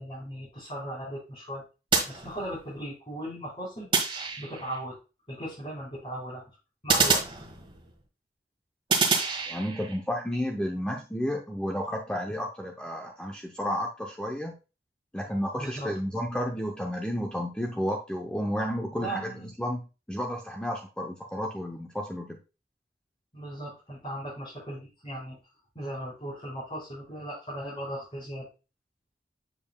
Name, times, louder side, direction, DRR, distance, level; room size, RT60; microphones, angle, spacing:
voice 1, 0.0-1.6 2.0-3.9 4.4-5.0 5.3-6.4 6.8-7.2 15.6-15.9 18.9-19.5 23.3-25.4 25.7-28.5, right 1 dB, 35° left, -8 dB, 4.1 m, -37 dB
sound 1, 1.9-2.8 3.9-4.8 6.9-8.0 8.9-10.0, right 4 dB, 30° right, 1.4 m, -27 dB
voice 2, 9.5-14.5 15.1-19.3 19.6-22.4, equal, 5° left, 1 dB, 0.6 m, -32 dB
7.4 x 6.9 x 2.2 m, 0.30 s
head